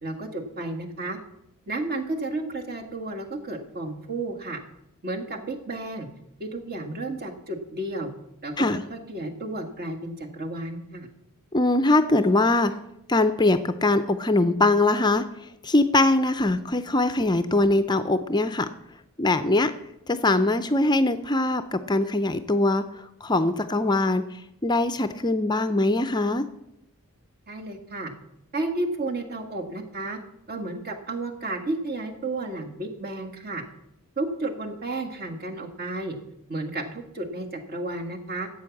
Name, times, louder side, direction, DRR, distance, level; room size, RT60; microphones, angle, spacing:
voice 1, 0.0-1.2 1.7-4.6 5.0-6.1 6.4-8.1 8.4-11.1 27.5-28.1 28.5-30.2 30.5-33.6 34.2-36.2 36.5-38.5, right 2 dB, 45° right, 4 dB, 1.8 m, -32 dB
voice 2, 11.5-12.7 13.1-15.2 15.6-18.7 19.2-19.7 20.1-22.8 23.2-24.2 24.6-26.5, left 2 dB, 20° left, 10 dB, 0.5 m, -22 dB
12.5 x 8.4 x 7.2 m, 0.84 s
head